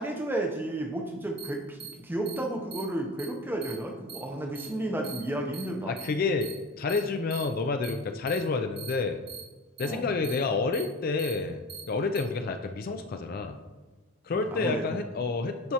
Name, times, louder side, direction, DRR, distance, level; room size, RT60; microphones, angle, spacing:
voice 1, 0.0-5.9 9.8-10.1 14.3-15.0, right 1 dB, 10° right, 1 dB, 0.6 m, -32 dB
sound 1, 1.4-1.5 1.8-1.9 2.3-2.4 2.7-2.8 3.2-3.3 3.6-3.7 4.1-4.2 4.6-4.7 5.0-5.2 5.5-5.6 6.0-6.1 6.4-6.5 6.9-7.0 7.3-7.4 7.8-7.9 8.3-8.4 8.8-8.9 9.3-9.4 9.8-9.9 10.2-10.4 10.7-10.8 11.2-11.3 11.7-11.8 12.2-12.3, right 8 dB, 55° right, 1.4 m, -41 dB
voice 2, 5.9-6.5 6.8-9.2 9.8-11.6 11.9-13.6 14.2-15.7, left 4 dB, 45° left, 6 dB, 0.3 m, -29 dB
10.5 x 4.4 x 2.8 m, 1.2 s
head